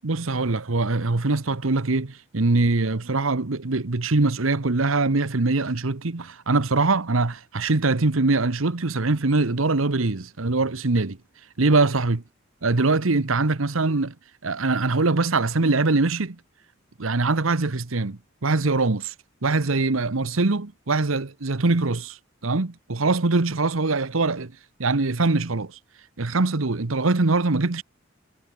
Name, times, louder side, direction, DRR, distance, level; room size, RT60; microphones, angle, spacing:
voice 1, 0.0-11.2 11.6-12.2 12.6-14.1 14.4-16.4 17.0-19.1 19.4-22.2 22.4-24.5 24.8-25.8 26.2-27.8, right 3 dB, 75° right, 1.2 m, -23 dB
head